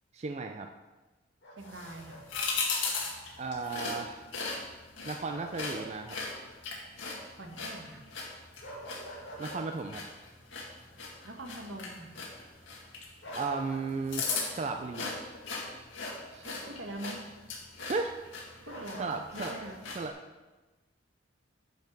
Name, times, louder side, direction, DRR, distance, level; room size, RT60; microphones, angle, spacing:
voice 1, 0.1-0.7 3.4-4.2 5.0-6.2 9.4-10.0 13.3-15.1 16.3-16.5 17.9-18.2 19.0-19.5 19.9-20.1, right 4 dB, 35° right, 5 dB, 0.4 m, -35 dB
Bark, 1.4-2.5 5.3-5.9 6.3-6.4 8.6-9.7 13.2-13.9 14.2-14.5 16.0-16.3 18.6-19.6, equal, 60° left, 2.4 m, -45 dB
voice 2, 1.5-2.2 7.3-8.0 11.2-12.1 16.4-17.2 18.6-19.8, right 1 dB, 75° right, 2 dB, 1.5 m, -43 dB
sound 1, 1.6-20.1, left 4 dB, 80° left, 2.0 m, -39 dB
9.2 x 5.4 x 6.1 m, 1.2 s
head